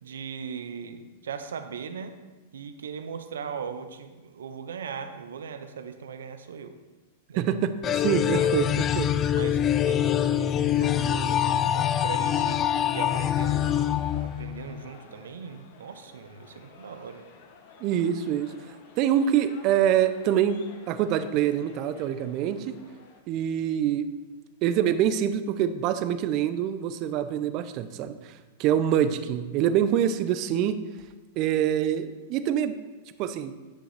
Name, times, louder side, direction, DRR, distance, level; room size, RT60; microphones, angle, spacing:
voice 1, 0.0-2.2 2.5-6.8 7.3-7.4 8.4-8.5 9.3-12.6 12.9-17.2, right 6 dB, 85° right, 9 dB, 0.7 m, -39 dB
voice 2, 7.4-9.1 17.8-18.5 19.0-22.7 23.3-24.1 24.6-30.8 31.4-32.7 33.2-33.5, right 10 dB, 45° right, 11 dB, 0.6 m, -25 dB
sound 1, 7.8-14.8, left 10 dB, 30° left, 0.4 m, -25 dB
sound 2, 11.6-23.2, left 4 dB, 60° left, 1.2 m, -52 dB
9.8 x 6.3 x 3.4 m, 1.2 s
hypercardioid pair, 115°, 0 cm